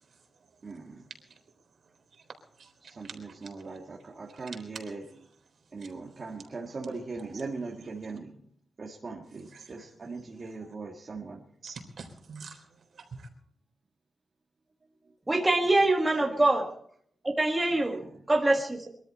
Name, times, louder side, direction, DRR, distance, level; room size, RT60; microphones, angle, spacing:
voice 1, 0.6-1.0 2.8-5.1 5.7-8.3 8.8-11.4 17.7-17.8, right 3 dB, 45° right, -1 dB, 2.0 m, -40 dB
voice 2, 3.0-3.5 9.5-9.7 11.6-12.6 13.0-13.3, right 4 dB, 65° right, 4 dB, 3.9 m, -45 dB
voice 3, 15.3-16.7 17.2-18.9, right 2 dB, 15° right, 1 dB, 1.7 m, -24 dB
23.0 x 13.5 x 4.2 m, 0.62 s
wide cardioid pair, 130°, 0 cm